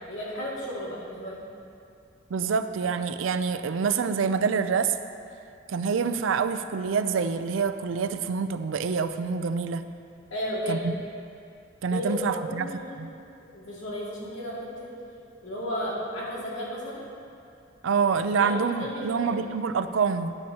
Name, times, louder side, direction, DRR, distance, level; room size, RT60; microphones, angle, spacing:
voice 1, 0.1-1.4 10.3-10.9 11.9-13.0 13.4-14.9 15.4-17.0 18.3-19.4, equal, 90° left, -6 dB, 2.3 m, -34 dB
voice 2, 2.3-5.0 5.7-9.9 10.7-11.0 11.8-13.1 17.8-20.3, right 5 dB, 85° right, 11 dB, 0.4 m, -26 dB
11.5 x 9.1 x 2.9 m, 2.5 s
head